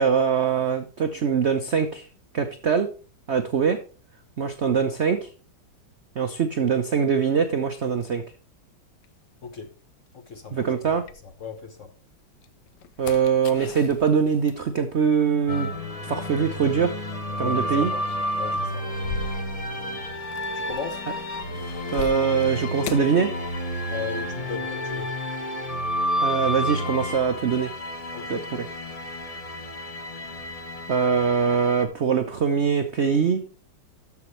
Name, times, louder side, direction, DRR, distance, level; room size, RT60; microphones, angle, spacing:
voice 1, 0.0-2.1 2.3-2.9 3.3-3.8 4.4-5.3 6.2-8.2 10.5-11.0 13.0-15.7 16.0-16.9 17.4-17.9 21.9-23.3 26.2-27.7 28.3-28.4 30.9-33.4, right 6 dB, 85° right, 0.6 m, -23 dB
sound 1, 9.0-11.8 12.3-24.0 24.3-25.1, left 5 dB, 65° left, 1.2 m, -42 dB
voice 2, 9.4-9.7 10.1-10.7 11.4-11.9 17.4-19.0 20.5-21.0 23.9-25.1 28.1-28.4, left 5 dB, 50° left, 1.0 m, -37 dB
sound 2, 15.5-31.8, left 1 dB, 25° left, 0.9 m, -30 dB
13.0 x 5.9 x 3.2 m
omnidirectional pair, 2.3 m